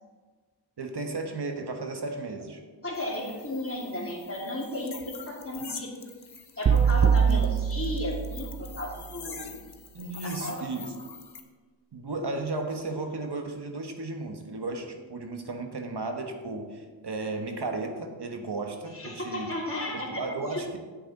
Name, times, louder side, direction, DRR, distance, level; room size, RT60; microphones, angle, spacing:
voice 1, 0.8-2.6 7.3-7.6 9.9-10.9 11.9-19.5 19.9-20.8, right 3 dB, 65° right, 5 dB, 1.3 m, -34 dB
voice 2, 2.8-5.9 6.6-9.4 10.2-10.6 18.9-20.7, left 1 dB, 30° left, -3 dB, 2.6 m, -34 dB
sound 1, 2.9-11.4, left 6 dB, 60° left, 1.0 m, -45 dB
sound 2, 6.7-8.9, right 7 dB, 35° right, 0.4 m, -23 dB
10.0 x 8.0 x 4.2 m, 1.4 s
wide cardioid pair, 65°, 44 cm